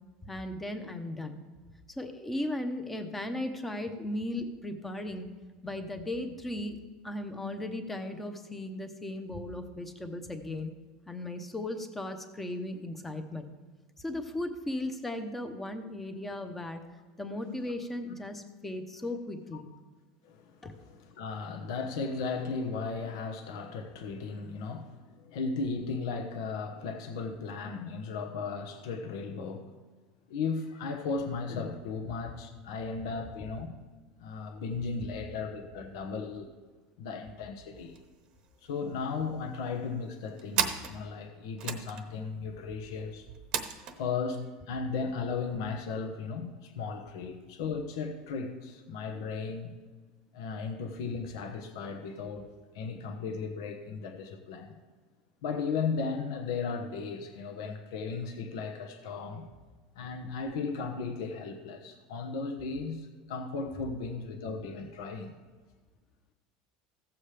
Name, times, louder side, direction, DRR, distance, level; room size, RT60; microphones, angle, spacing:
voice 1, 0.2-1.4 2.0-5.3 5.6-6.8 7.0-10.7 11.1-13.5 14.0-16.8 17.2-19.7 20.6-20.7, left 1 dB, 10° left, 7 dB, 0.8 m, -36 dB
voice 2, 20.2-29.7 30.3-33.7 34.2-36.5 37.0-38.0 38.6-43.2 44.0-49.7 50.3-52.5 52.7-54.7 55.4-59.5 60.0-65.3, left 4 dB, 80° left, 5 dB, 1.1 m, -36 dB
sound 1, 37.8-38.0 38.3-38.4 38.7-39.3 39.9-44.0, right 8 dB, 40° right, 0.8 m, -35 dB
15.5 x 7.2 x 3.3 m, 1.4 s
supercardioid pair, 155°, 2 cm